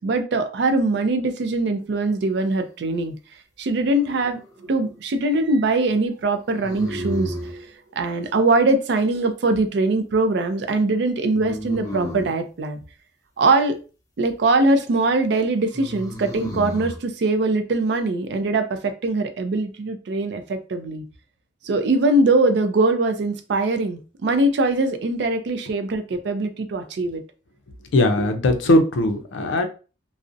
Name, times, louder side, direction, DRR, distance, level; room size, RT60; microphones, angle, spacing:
voice 1, 0.0-3.1 3.6-4.4 4.7-12.8 13.4-13.8 14.2-21.0 21.6-27.2, right 2 dB, 60° right, 0.4 m, -22 dB
sound 1, 3.9-4.6 6.6-7.6 11.3-12.4 15.7-17.0, equal, 20° left, 0.4 m, -33 dB
voice 2, 27.9-29.6, left 1 dB, 75° left, 0.4 m, -19 dB
2.5 x 2.0 x 2.5 m
head